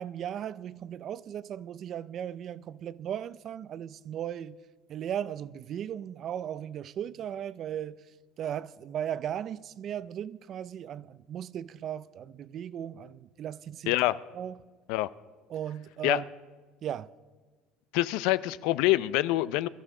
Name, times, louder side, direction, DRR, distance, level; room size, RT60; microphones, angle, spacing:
voice 1, 0.0-4.6 4.9-8.0 8.4-13.9 14.3-14.6 15.5-16.3 16.8-17.1, right 9 dB, 35° right, 0.3 m, -36 dB
voice 2, 13.9-14.2 14.9-15.1 16.0-16.2 17.9-19.7, left 17 dB, 65° left, 0.4 m, -25 dB
22.5 x 13.5 x 3.7 m
cardioid pair, 165°, 0 cm